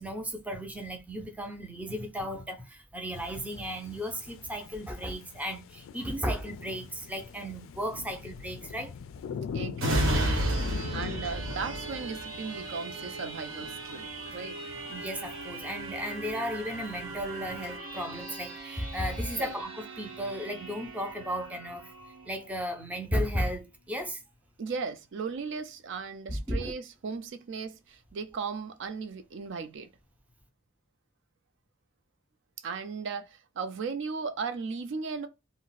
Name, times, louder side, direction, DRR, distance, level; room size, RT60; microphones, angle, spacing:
voice 1, 0.0-8.9 14.9-21.9 22.2-24.2 26.3-26.7, equal, 10° right, 0.5 m, -35 dB
sound 1, 3.1-17.8, left 6 dB, 80° left, 0.3 m, -44 dB
voice 2, 9.5-10.6 10.9-14.8 19.4-19.5 24.6-29.9 32.6-35.3, right 5 dB, 65° right, 0.4 m, -37 dB
sound 2, 9.8-23.1 23.5-23.7, right 1 dB, 85° right, 1.0 m, -35 dB
2.4 x 2.1 x 3.8 m
head